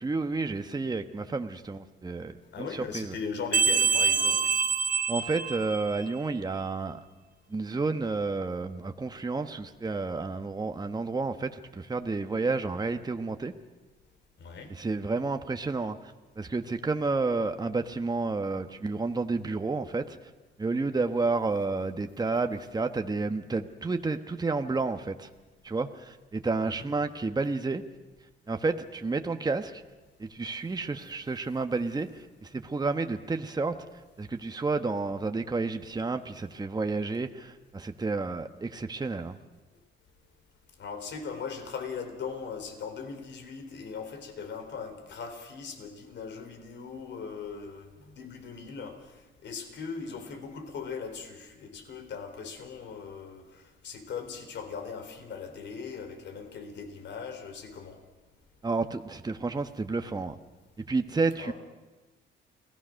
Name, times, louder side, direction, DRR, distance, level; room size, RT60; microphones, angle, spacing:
voice 1, 0.0-3.1 5.1-7.0 7.5-13.5 14.7-20.2 20.6-25.3 25.6-27.8 28.5-29.8 30.2-33.7 34.2-39.4 58.6-60.4 60.9-61.5, right 3 dB, 20° right, 7 dB, 1.2 m, -30 dB
voice 2, 2.5-4.6 14.4-14.7 26.6-26.9 40.8-58.0 61.4-61.5, left 5 dB, 65° left, 7 dB, 4.0 m, -39 dB
sound 1, 3.5-6.1, right 6 dB, 45° right, 1.4 m, -26 dB
29.5 x 19.0 x 6.4 m, 1.2 s
cardioid pair, 90°, 20 cm